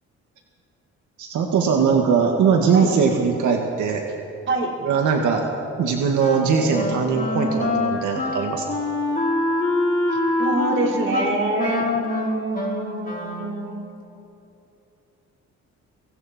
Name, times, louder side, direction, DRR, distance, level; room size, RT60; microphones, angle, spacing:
voice 1, 1.2-4.0 4.8-5.5 5.8-8.7, right 6 dB, 80° right, 2 dB, 2.1 m, -20 dB
Wind instrument woodwind instrument, 6.2-13.6, left 2 dB, 30° left, 4.3 m, -25 dB
voice 2, 10.1-13.8, right 2 dB, 40° right, -1 dB, 4.2 m, -26 dB
26.0 x 25.0 x 4.5 m, 2.9 s
cardioid pair, 90°, 30 cm